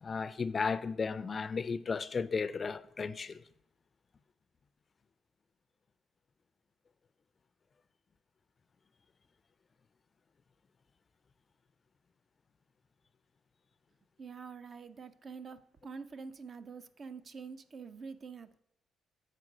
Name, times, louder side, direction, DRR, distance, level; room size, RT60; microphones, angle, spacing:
voice 1, 0.0-3.4, left 5 dB, 40° left, 0.4 m, -34 dB
voice 2, 14.2-18.6, right 5 dB, 45° right, 0.4 m, -46 dB
7.5 x 4.5 x 4.9 m
cardioid pair, 90°, 0 cm